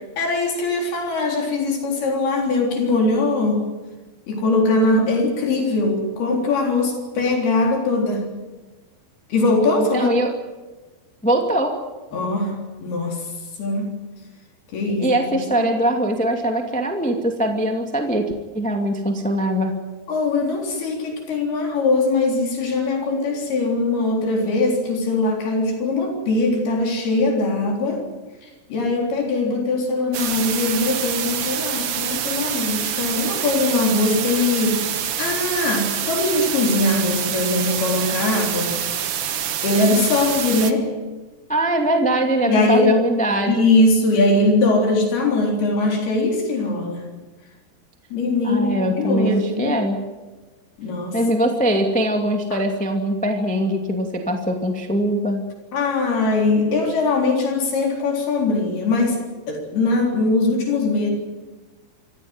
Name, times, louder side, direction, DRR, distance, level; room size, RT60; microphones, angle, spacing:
voice 1, 0.2-3.6 4.3-8.3 9.3-10.1 12.1-13.3 13.6-13.9 14.7-15.7 20.1-28.0 28.4-38.8 39.6-40.9 42.5-43.0 43.5-47.0 48.1-49.8 50.8-51.2 55.7-59.2 59.5-61.1, left 2 dB, 75° left, 1 dB, 5.8 m, -21 dB
voice 2, 9.7-10.3 11.2-11.7 14.9-19.7 41.5-43.7 48.4-50.0 51.1-55.5, right 1 dB, 5° left, 3 dB, 1.1 m, -22 dB
sound 1, 30.1-40.7, right 9 dB, 80° right, 1.2 m, -26 dB
25.5 x 15.5 x 9.6 m, 1.2 s
omnidirectional pair, 4.6 m